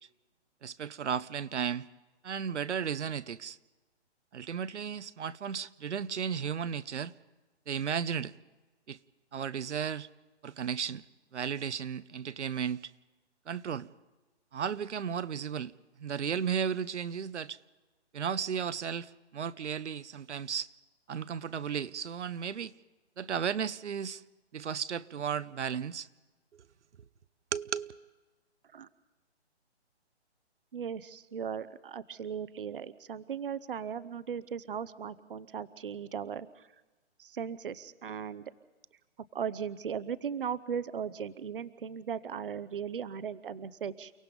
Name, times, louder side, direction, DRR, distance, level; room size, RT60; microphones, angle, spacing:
voice 1, 0.6-1.9 2.2-3.6 4.3-7.1 7.7-8.3 8.9-9.0 9.3-10.1 10.4-11.0 11.3-12.9 13.5-13.9 14.5-15.7 16.0-17.6 18.1-20.7 21.1-22.7 23.2-24.2 24.5-26.1 26.5-26.6 27.5-27.9, right 7 dB, 80° right, 0.9 m, -34 dB
voice 2, 30.7-36.7 37.2-38.4 39.3-44.1, right 7 dB, 50° right, 0.8 m, -37 dB
30.0 x 17.5 x 5.3 m
hypercardioid pair, 175°, 34 cm